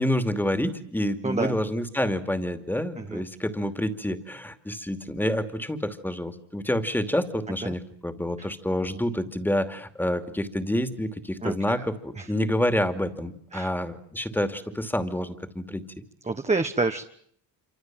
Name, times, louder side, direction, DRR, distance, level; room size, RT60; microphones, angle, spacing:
voice 1, 0.0-15.8, left 1 dB, 5° left, 8 dB, 2.6 m, -28 dB
voice 2, 1.2-1.6 3.0-3.2 7.6-7.7 8.4-8.5 11.4-11.9 12.2-12.3 13.5-13.7 16.2-17.0, right 3 dB, 15° right, 6 dB, 1.2 m, -28 dB
27.0 x 25.0 x 7.6 m, 0.65 s
cardioid pair, 115°, 46 cm